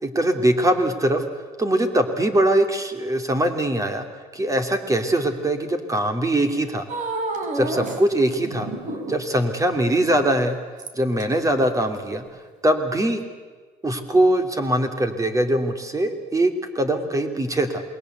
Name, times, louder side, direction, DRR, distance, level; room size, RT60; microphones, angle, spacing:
voice 1, 0.0-1.2 1.6-4.1 4.3-6.8 7.5-8.7 9.1-10.6 10.9-12.2 12.6-13.2 13.8-17.8, right 1 dB, 20° right, 7 dB, 3.1 m, -22 dB
sound 1, 6.9-8.0 8.4-9.3 10.8-11.2 12.0-12.1, right 2 dB, 50° right, 4.5 m, -29 dB
27.5 x 21.5 x 8.2 m, 1.4 s
cardioid pair, 110°, 17 cm